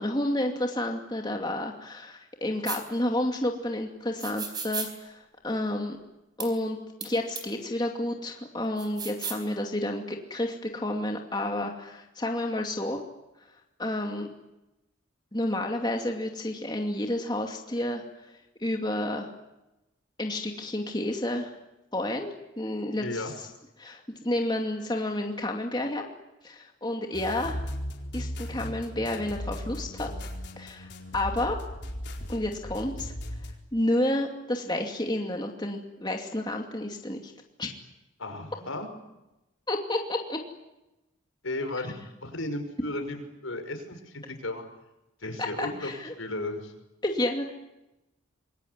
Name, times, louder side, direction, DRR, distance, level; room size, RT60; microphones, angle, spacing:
voice 1, 0.0-6.0 6.4-13.0 13.8-14.3 15.3-18.3 18.6-19.3 20.2-21.5 21.9-22.3 22.6-23.2 23.8-26.0 26.4-27.6 28.1-30.1 30.6-31.6 32.3-33.1 33.7-37.3 37.6-37.7 39.7-40.4 45.4-46.1 47.0-47.5, left 1 dB, 20° left, 2 dB, 2.5 m, -30 dB
sound 1, 2.6-2.8 4.2-4.9 6.4-6.5 7.0-7.1 7.3-7.4 8.8-9.4, right 5 dB, 20° right, 4.1 m, -34 dB
voice 2, 23.0-23.3 38.2-38.9 41.4-41.9 42.2-44.6 45.2-45.9 46.2-46.7, left 2 dB, 85° left, 6 dB, 5.7 m, -34 dB
sound 2, 27.1-33.5, equal, 55° left, 4.4 m, -37 dB
27.0 x 22.5 x 9.7 m, 0.97 s
head